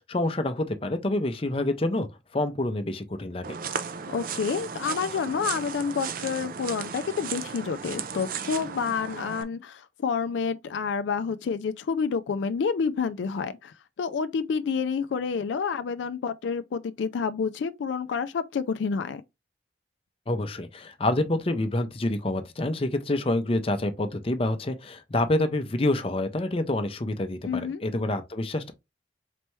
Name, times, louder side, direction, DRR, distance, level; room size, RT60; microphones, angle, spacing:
voice 1, 0.0-2.1 2.3-3.5 20.3-28.7, left 1 dB, 30° left, 0.6 m, -27 dB
sound 1, 3.4-9.4, right 6 dB, 50° right, 0.4 m, -35 dB
voice 2, 4.1-19.2 27.4-27.8, left 5 dB, 75° left, 0.3 m, -29 dB
4.1 x 3.3 x 3.1 m
head